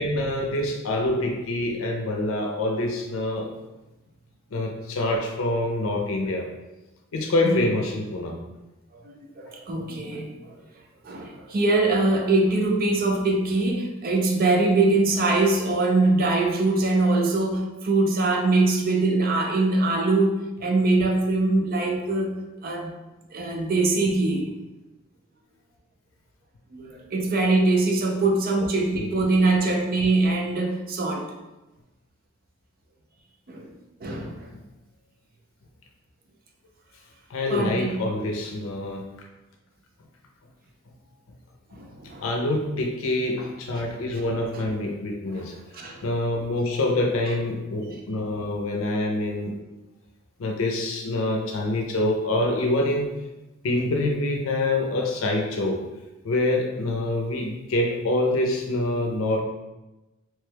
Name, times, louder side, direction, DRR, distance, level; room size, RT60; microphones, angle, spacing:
voice 1, 0.0-3.5 4.5-6.5 7.1-8.4 28.6-28.7 29.0-29.2 37.3-39.0 42.2-45.5 46.0-49.6 50.4-53.1 53.6-55.8 56.2-59.4, left 2 dB, 85° left, 1 dB, 0.5 m, -26 dB
voice 2, 8.9-10.5 11.0-22.3 22.6-22.9 23.3-24.5 26.7-31.3 33.5-33.7 34.0-34.5 37.5-38.0 41.7-42.3 44.1-44.2 45.4-45.5 45.7-46.1, right 2 dB, 45° right, 2 dB, 0.5 m, -23 dB
3.1 x 2.2 x 3.3 m, 1.0 s
head